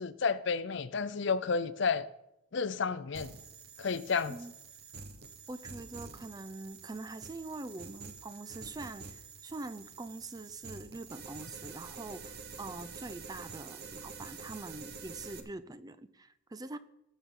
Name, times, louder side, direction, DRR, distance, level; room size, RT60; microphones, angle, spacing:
voice 1, 0.0-2.1 2.5-3.3 3.8-4.3, left 5 dB, 55° left, 0.5 m, -31 dB
sound 1, 3.1-15.4, right 5 dB, 50° right, 0.9 m, -48 dB
voice 2, 5.5-16.8, right 2 dB, 20° right, 0.4 m, -44 dB
18.0 x 7.1 x 3.7 m
head